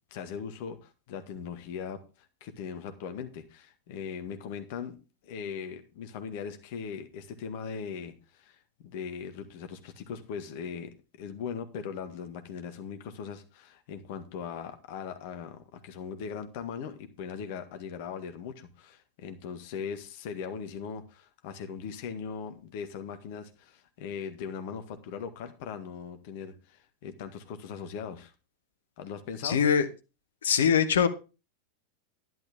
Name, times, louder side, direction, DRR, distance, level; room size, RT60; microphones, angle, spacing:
voice 1, 0.1-2.0 2.4-5.0 5.2-28.3 29.0-29.6, left 6 dB, 50° left, 7 dB, 1.6 m, -39 dB
voice 2, 29.4-29.9 30.4-31.1, left 7 dB, 65° left, 10 dB, 1.2 m, -22 dB
11.0 x 11.0 x 3.6 m, 0.31 s
figure-of-eight pair, 90°, 0 cm